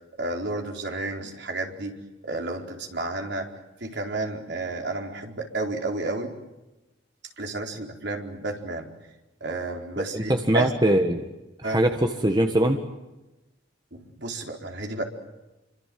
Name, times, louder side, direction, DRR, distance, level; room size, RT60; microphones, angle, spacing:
voice 1, 0.2-1.9 2.2-3.5 3.8-6.3 7.4-8.9 9.4-10.7 11.6-11.8 13.9-15.0, right 2 dB, 60° right, 2 dB, 4.4 m, -31 dB
voice 2, 10.0-11.2 11.6-12.8, right 1 dB, 20° right, 4 dB, 1.7 m, -22 dB
29.0 x 25.5 x 7.8 m, 1.0 s
head